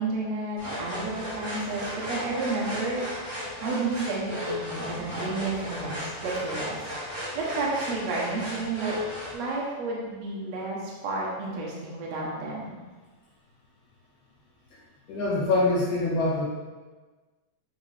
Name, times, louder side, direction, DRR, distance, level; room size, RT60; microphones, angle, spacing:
voice 1, 0.0-9.0 9.3-12.7, right 3 dB, 70° right, -4 dB, 1.8 m, -31 dB
sound 1, 0.6-9.3, left 1 dB, 35° right, 1.7 m, -35 dB
voice 2, 15.1-16.5, left 2 dB, 70° left, -6 dB, 2.9 m, -24 dB
8.2 x 3.9 x 3.3 m, 1.3 s
omnidirectional pair, 3.8 m